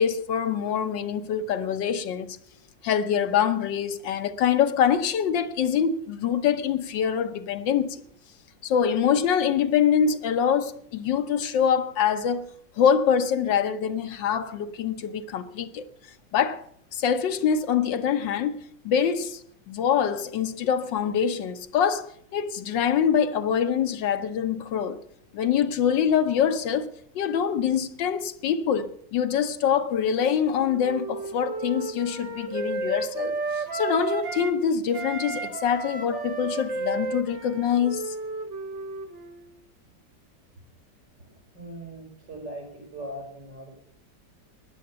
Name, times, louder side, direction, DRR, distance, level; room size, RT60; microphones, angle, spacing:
voice 1, 0.0-2.4 2.8-8.0 8.6-12.5 12.8-15.9 16.3-16.6 16.9-19.4 19.7-25.0 25.3-26.9 27.1-38.1, left 8 dB, 90° left, 1.7 m, -25 dB
Wind instrument woodwind instrument, 30.2-34.6 34.9-39.4, right 4 dB, 40° right, 1.8 m, -33 dB
voice 2, 41.2-42.7 42.9-43.7, right 1 dB, 75° right, 6.2 m, -40 dB
15.5 x 10.5 x 6.9 m
omnidirectional pair, 1.9 m